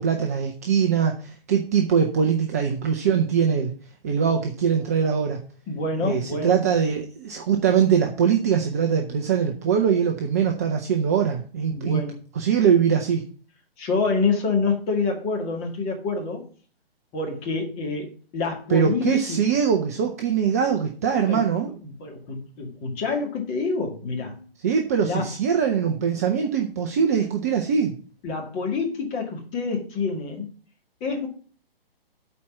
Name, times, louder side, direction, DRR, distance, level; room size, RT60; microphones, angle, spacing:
voice 1, 0.0-3.7 4.0-5.4 6.0-12.0 12.4-13.2 18.7-21.7 24.6-27.9, right 7 dB, 15° right, 3 dB, 0.4 m, -22 dB
voice 2, 5.7-6.6 11.7-12.2 13.8-16.5 17.1-19.4 21.3-21.4 22.0-24.5 25.0-25.3 28.2-30.5 31.0-31.3, left 4 dB, 20° left, 1 dB, 2.0 m, -27 dB
8.4 x 4.4 x 7.1 m, 0.42 s
figure-of-eight pair, 130°, 30 cm